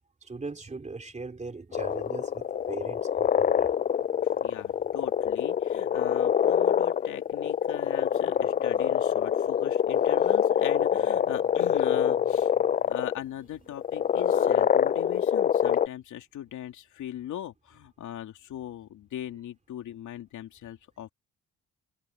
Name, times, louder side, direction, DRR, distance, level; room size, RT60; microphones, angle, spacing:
voice 1, 0.2-3.7, right 3 dB, 25° right, 3.0 m, -39 dB
sound 1, 1.7-13.2 13.8-15.9, left 8 dB, 30° left, 0.3 m, -25 dB
voice 2, 4.2-12.5 12.9-21.1, left 11 dB, 75° left, 2.9 m, -40 dB
cardioid pair, 90°, 30 cm